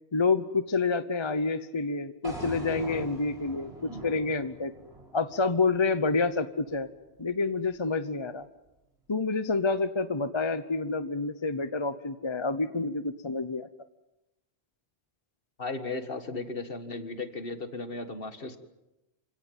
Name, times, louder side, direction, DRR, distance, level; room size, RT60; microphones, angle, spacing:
voice 1, 0.1-4.7 5.1-6.9 7.2-8.5 9.1-13.7, left 3 dB, 25° left, 12 dB, 0.9 m, -28 dB
sound 1, 2.2-6.4, right 1 dB, 65° right, 4.3 m, -42 dB
voice 2, 15.6-18.6, left 3 dB, 55° left, 9 dB, 1.9 m, -36 dB
28.0 x 17.0 x 9.3 m, 0.96 s
omnidirectional pair, 1.1 m